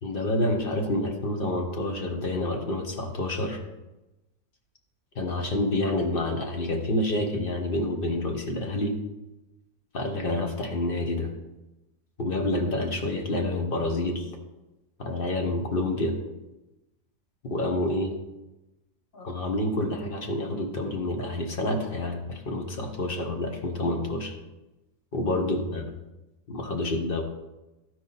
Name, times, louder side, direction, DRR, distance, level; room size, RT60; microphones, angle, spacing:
voice 1, 0.0-3.6 5.1-8.9 9.9-11.3 12.2-14.3 15.0-16.1 17.4-18.1 19.1-24.3 25.1-25.8 26.5-27.2, left 1 dB, 40° left, 3 dB, 1.2 m, -28 dB
13.5 x 4.7 x 4.1 m, 1.0 s
omnidirectional pair, 1.6 m